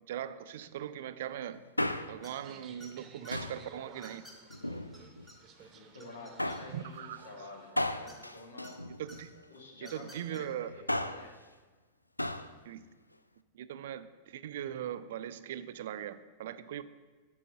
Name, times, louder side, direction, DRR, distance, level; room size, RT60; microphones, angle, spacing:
voice 1, 0.1-1.6 2.1-4.3 6.7-7.3 9.0-9.3 9.8-10.7 12.7-12.8 13.5-16.8, right 10 dB, 55° right, 0.4 m, -40 dB
Male speech man speaking, 1.6-2.4 3.3-3.7 4.5-5.3 6.4-6.8 7.8-9.4 10.7-11.3 12.2-12.5 12.8-12.9, left 1 dB, 85° left, 0.3 m, -35 dB
sound 1, 2.2-2.5 2.8-3.3 4.0-4.6 4.9-5.0 5.3-5.4 5.7-6.9 8.1-8.7 9.1-9.2 9.8-10.4, equal, 10° left, 2.4 m, -53 dB
sound 2, 2.4-7.7, right 6 dB, 30° right, 0.9 m, -55 dB
voice 2, 5.7-8.8 9.5-11.3, left 2 dB, 65° left, 1.5 m, -49 dB
8.9 x 4.7 x 7.3 m
figure-of-eight pair, 90°, 0 cm